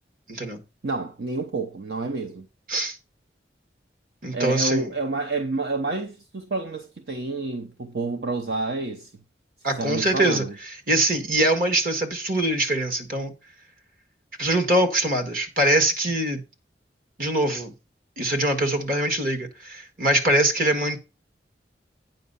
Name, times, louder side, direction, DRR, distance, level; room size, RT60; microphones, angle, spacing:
voice 1, 0.3-0.6 2.7-3.0 4.2-4.9 9.6-10.4 10.9-13.3 14.4-16.4 17.2-17.7 18.2-21.0, right 1 dB, 50° right, 1.7 m, -23 dB
voice 2, 0.8-2.5 4.3-9.1 9.8-10.5, right 3 dB, 65° right, 0.8 m, -29 dB
9.0 x 5.5 x 5.4 m
head